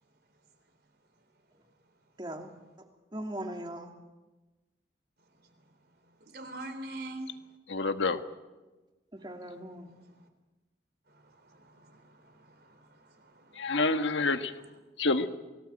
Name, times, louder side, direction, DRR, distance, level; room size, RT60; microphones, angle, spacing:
voice 1, 2.2-2.5 2.8-3.9 9.1-9.9, right 1 dB, 25° right, 4 dB, 2.6 m, -40 dB
voice 2, 6.3-7.3 11.7-12.7 13.4-13.5, right 1 dB, 55° right, 7 dB, 3.7 m, -42 dB
voice 3, 7.7-8.2 13.5-14.5 15.0-15.3, left 3 dB, 85° left, 8 dB, 1.5 m, -27 dB
29.0 x 18.5 x 8.9 m, 1.2 s
head